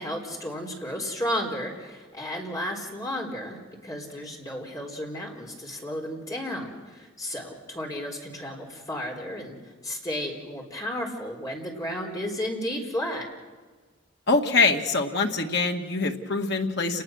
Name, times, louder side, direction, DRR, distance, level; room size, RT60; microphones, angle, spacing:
voice 1, 0.0-9.6 9.8-13.3, equal, 20° left, 0 dB, 4.0 m, -33 dB
voice 2, 14.3-17.0, left 3 dB, 60° left, 3 dB, 1.9 m, -24 dB
29.5 x 20.0 x 6.4 m, 1.4 s
head